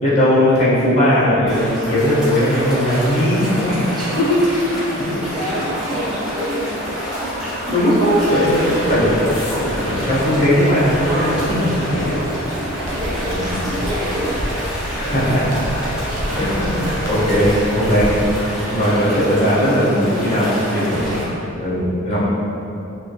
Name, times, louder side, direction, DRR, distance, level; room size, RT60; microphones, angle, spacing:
voice 1, 0.0-3.8 4.2-4.4 4.9-5.1 7.3-9.5 9.8-11.6 13.2-13.7 15.0-15.8 16.4-21.2 21.6-22.2, equal, 30° left, -11 dB, 0.8 m, -18 dB
sound 1, 1.5-21.2, equal, 5° right, 1.1 m, -27 dB
voice 2, 3.9-4.3 5.2-7.0 11.6-12.3 12.9-14.4 17.4-17.5, equal, 20° right, -6 dB, 0.5 m, -29 dB
sound 2, 4.3-18.4 18.7-19.1 19.4-19.8, equal, 75° left, 0.5 m, -32 dB
sound 3, 12.8-18.3, equal, 60° right, 0.6 m, -29 dB
3.5 x 2.3 x 2.7 m, 2.7 s
head